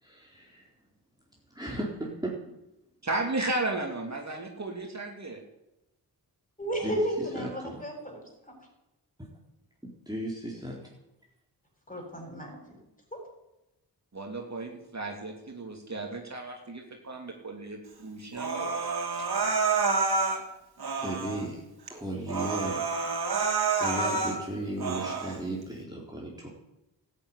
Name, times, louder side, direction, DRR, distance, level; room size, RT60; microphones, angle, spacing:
voice 1, 0.0-0.7 1.5-2.3 6.8-7.0 7.3-7.8 9.2-9.3 10.1-10.8 21.0-21.6 21.9-22.8 23.3-26.5, right 1 dB, 10° right, -4 dB, 4.0 m, -36 dB
voice 2, 3.0-5.4 14.1-18.7, right 2 dB, 40° right, 1 dB, 3.0 m, -34 dB
voice 3, 6.6-8.2 11.9-12.8 13.1-13.2, equal, 20° left, 1 dB, 7.7 m, -33 dB
Human voice, 18.3-20.4 20.8-21.4 21.9-22.0 22.3-24.4 24.8-25.4, right 4 dB, 65° right, 3.0 m, -28 dB
13.5 x 9.4 x 9.8 m, 0.93 s
cardioid pair, 50°, 40 cm